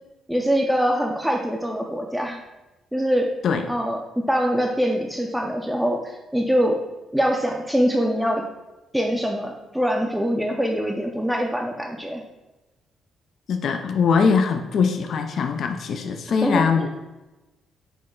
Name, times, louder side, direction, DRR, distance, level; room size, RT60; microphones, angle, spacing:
voice 1, 0.3-2.4 2.9-3.3 3.7-4.0 4.3-6.8 7.1-8.4 8.9-12.2 16.4-16.9, equal, 5° right, 0 dB, 0.5 m, -23 dB
voice 2, 13.5-16.9, left 5 dB, 65° left, 5 dB, 0.4 m, -21 dB
6.1 x 2.1 x 3.7 m, 1.0 s
cardioid pair, 90°, 0 cm